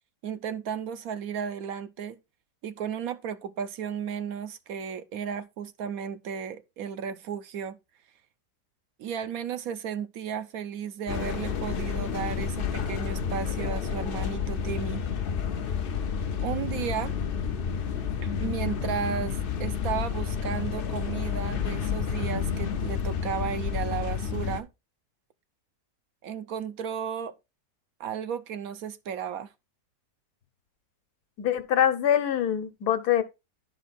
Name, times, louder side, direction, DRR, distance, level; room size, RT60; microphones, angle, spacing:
voice 1, 0.2-2.2 2.6-7.8 9.0-15.0 16.4-17.1 18.2-24.7 26.2-27.3 28.0-29.5, right 8 dB, 70° right, 1.0 m, -34 dB
sound 1, 11.1-24.6, left 7 dB, 55° left, 0.6 m, -30 dB
voice 2, 31.4-33.2, left 10 dB, 75° left, 1.4 m, -24 dB
11.0 x 4.4 x 4.1 m
omnidirectional pair, 1.7 m